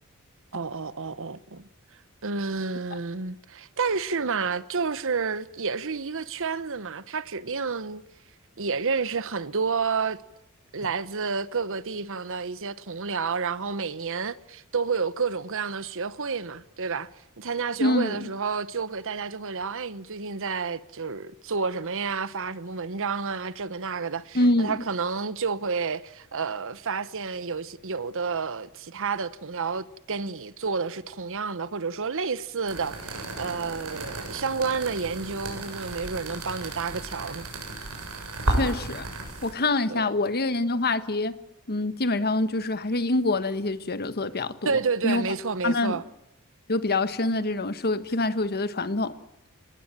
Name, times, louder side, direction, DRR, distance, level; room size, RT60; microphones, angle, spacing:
voice 1, 0.5-1.6 2.2-8.0 8.6-10.2 10.7-17.1 17.4-37.5 39.9-40.1 44.6-46.0, right 5 dB, 65° right, 1.1 m, -30 dB
voice 2, 17.8-18.2 24.3-24.7 38.5-39.1 39.4-41.4 41.7-45.2 45.6-46.0 46.7-49.2, left 2 dB, 45° left, 1.4 m, -25 dB
sound 1, 32.7-39.5, right 2 dB, 80° right, 7.2 m, -33 dB
27.0 x 20.0 x 9.0 m
head